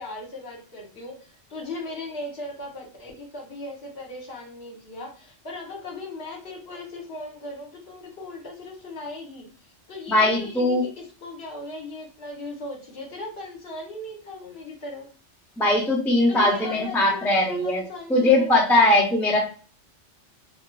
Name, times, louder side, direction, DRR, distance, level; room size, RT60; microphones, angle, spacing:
voice 1, 0.0-9.5 9.9-15.1 16.3-18.5, left 2 dB, 60° left, -1 dB, 1.2 m, -38 dB
voice 2, 10.1-10.9 15.6-17.8 18.1-19.4, left 1 dB, 5° left, 0 dB, 0.3 m, -20 dB
3.8 x 2.4 x 2.2 m, 0.40 s
omnidirectional pair, 1.2 m